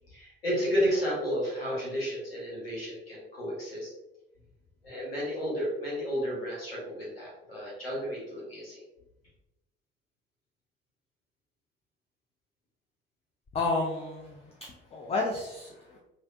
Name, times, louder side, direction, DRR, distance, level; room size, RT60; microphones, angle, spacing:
voice 1, 0.1-3.9 4.8-8.8, equal, 85° left, -6 dB, 1.1 m, -32 dB
voice 2, 13.5-16.0, left 3 dB, 20° left, 0 dB, 0.5 m, -32 dB
3.2 x 2.7 x 2.5 m, 0.94 s
figure-of-eight pair, 50°, 29 cm